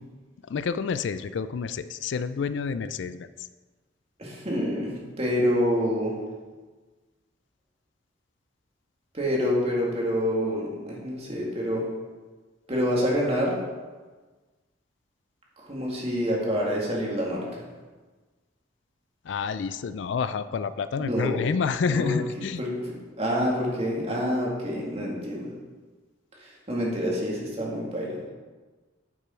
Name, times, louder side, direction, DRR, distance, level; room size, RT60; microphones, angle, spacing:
voice 1, 0.4-3.3 19.2-22.6, left 5 dB, 65° left, 13 dB, 0.4 m, -29 dB
voice 2, 4.2-6.2 9.1-11.9 12.7-13.6 15.6-17.6 21.0-21.4 21.9-22.1 22.6-22.7 23.2-25.5 26.4-28.2, equal, 35° right, -3 dB, 2.2 m, -27 dB
9.4 x 6.8 x 4.4 m, 1.3 s
head